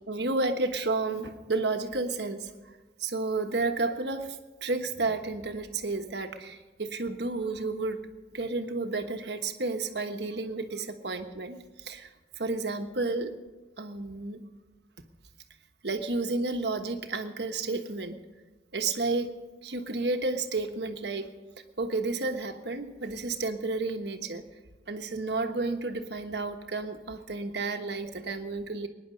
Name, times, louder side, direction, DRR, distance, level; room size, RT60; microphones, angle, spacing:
voice 1, 0.0-2.5 3.0-4.3 4.6-8.0 8.3-12.1 12.4-13.3 13.8-14.4 15.8-18.2 18.7-19.3 19.6-21.3 21.8-24.4 24.9-28.9, right 3 dB, 65° right, 6 dB, 1.3 m, -31 dB
21.5 x 10.5 x 5.2 m, 1.2 s
head